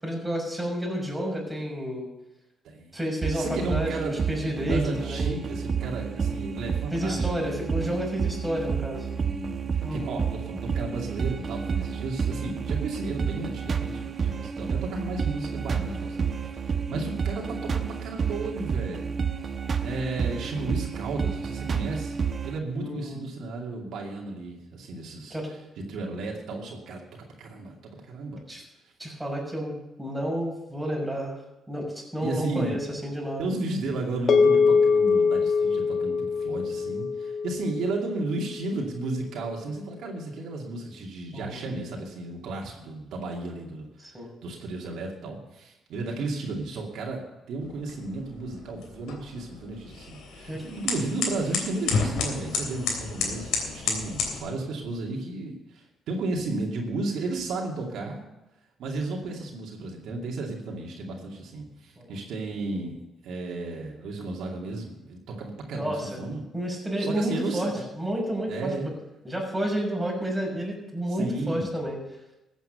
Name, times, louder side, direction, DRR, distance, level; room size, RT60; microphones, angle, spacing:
voice 1, 0.0-2.1 2.9-5.4 6.9-9.1 9.8-10.1 22.8-23.2 25.3-25.5 28.5-28.6 29.0-31.4 31.7-33.5 41.3-41.6 44.0-44.3 50.5-50.6 62.0-62.2 65.7-66.2 66.5-68.7 69.2-72.0, equal, 5° right, -2 dB, 5.9 m, -30 dB
voice 2, 2.6-3.0 3.3-4.2 4.6-7.5 9.1-16.3 16.5-19.1 19.8-25.6 25.9-27.0 27.4-28.4 32.2-32.8 33.4-58.2 58.8-63.0 63.2-66.4 67.0-67.8 68.5-68.9 71.1-71.8, right 2 dB, 75° right, -1 dB, 2.5 m, -33 dB
sound 1, 3.2-22.6, right 6 dB, 45° right, 1.0 m, -30 dB
sound 2, 34.3-38.8, left 5 dB, 55° left, 1.3 m, -23 dB
sound 3, 47.6-54.4, left 5 dB, 85° left, 3.2 m, -32 dB
14.5 x 8.1 x 6.7 m, 0.96 s
cardioid pair, 90°, 0 cm